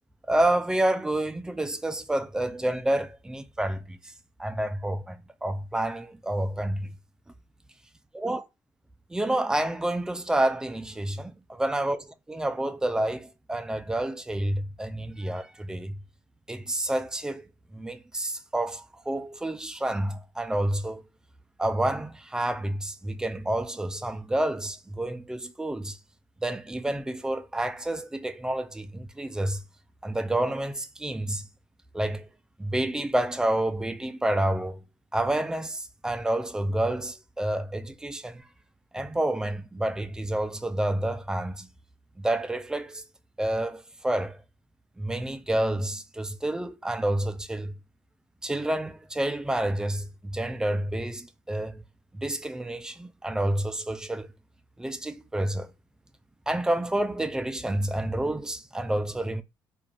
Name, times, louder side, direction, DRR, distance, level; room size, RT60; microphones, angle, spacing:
voice 1, 0.3-4.0 4.4-5.2 5.4-6.9 8.1-8.4 9.1-16.0 16.5-17.5 17.7-21.0 21.6-26.0 26.4-29.6 30.0-31.5 31.9-32.3 32.6-34.8 35.1-38.5 38.9-41.7 42.2-43.0 43.4-44.4 45.0-47.7 48.4-51.8 52.1-54.3 54.8-55.7 56.5-59.4, right 1 dB, 10° right, 0.3 m, -29 dB
2.4 x 2.3 x 3.1 m
cardioid pair, 110°, 8 cm